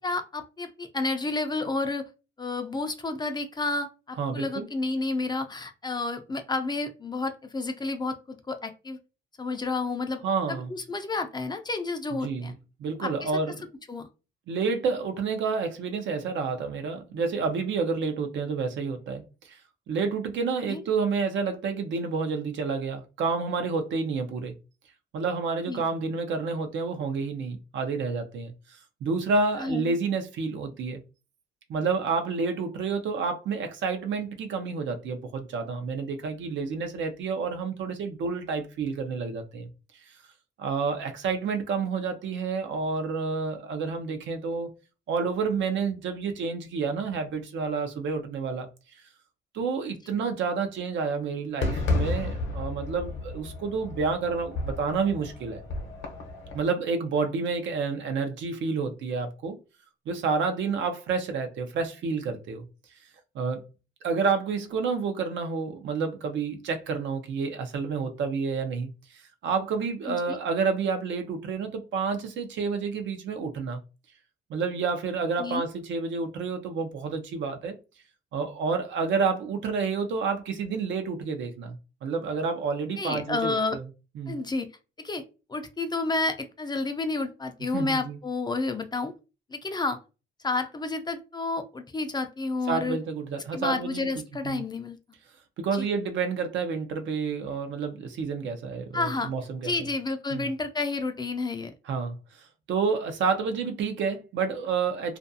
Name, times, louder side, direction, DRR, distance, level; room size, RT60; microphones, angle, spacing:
voice 1, 0.0-2.0 2.4-9.0 9.4-10.2 10.5-12.5 13.0-13.3 13.9-14.1 20.7-20.8 25.7-25.8 29.6-29.9 70.1-70.4 75.4-75.6 83.0-83.8 84.3-84.7 85.0-85.2 85.5-89.1 89.5-90.0 90.4-93.0 93.5-95.0 95.8-95.9 98.9-99.3 99.6-101.7, left 3 dB, 20° left, 0.4 m, -30 dB
voice 2, 4.2-4.7 10.2-10.7 12.2-12.5 12.8-13.7 14.5-19.6 19.9-24.5 25.1-31.0 31.7-39.7 40.6-44.7 45.1-48.7 49.5-55.6 56.5-59.6 60.1-62.6 63.3-63.6 64.0-73.8 74.5-77.8 78.3-83.8 84.2-84.4 87.7-88.2 92.7-94.1 94.4-94.6 95.6-99.7 100.3-100.5 101.9-102.4 102.7-105.2, right 5 dB, 70° right, 0.6 m, -29 dB
Fireworks, 51.6-56.7, left 2 dB, 65° left, 0.7 m, -32 dB
2.4 x 2.3 x 2.6 m
cardioid pair, 90°, 20 cm